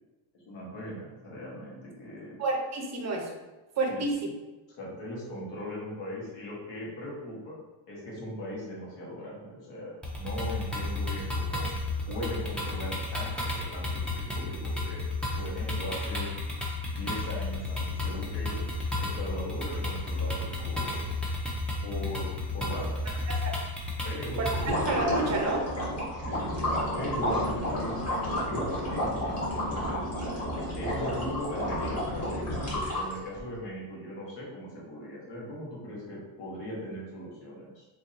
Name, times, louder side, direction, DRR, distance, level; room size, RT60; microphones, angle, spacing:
voice 1, 0.3-2.4 3.9-4.0 4.8-7.6 7.9-9.9 10.2-11.7 12.1-15.0 15.3-16.3 16.9-18.6 19.0-21.0 21.8-23.1 24.0-24.4 26.2-26.5 26.9-30.1 30.8-32.5 32.9-37.9, equal, 60° left, -4 dB, 1.4 m, -39 dB
voice 2, 2.4-3.3 3.8-4.3 23.3-23.5 24.4-25.6, right 2 dB, 35° right, 1 dB, 0.6 m, -30 dB
sound 1, 10.0-24.7, left 2 dB, ahead, 0.4 m, -32 dB
sound 2, 24.4-33.4, equal, 30° left, 1.2 m, -31 dB
2.9 x 2.7 x 3.9 m, 1.2 s
cardioid pair, 140°, 49 cm